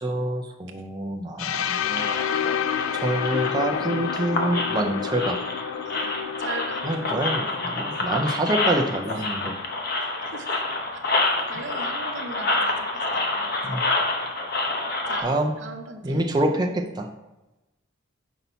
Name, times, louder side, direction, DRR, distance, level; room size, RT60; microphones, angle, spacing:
voice 1, 0.0-2.0 3.0-5.4 6.8-9.6 13.6-13.8 15.2-15.5 16.0-17.1, right 1 dB, 20° right, 1 dB, 0.5 m, -26 dB
sound 1, 1.4-9.2, left 8 dB, 75° left, 0.3 m, -30 dB
sound 2, 1.9-15.2, left 2 dB, 50° left, 0.9 m, -28 dB
voice 2, 5.8-7.7 9.2-9.3 10.2-10.6 10.9-11.0 11.4-13.6 15.1-16.3, right 3 dB, 60° right, 5 dB, 0.8 m, -39 dB
5.9 x 5.5 x 4.0 m, 1.0 s
head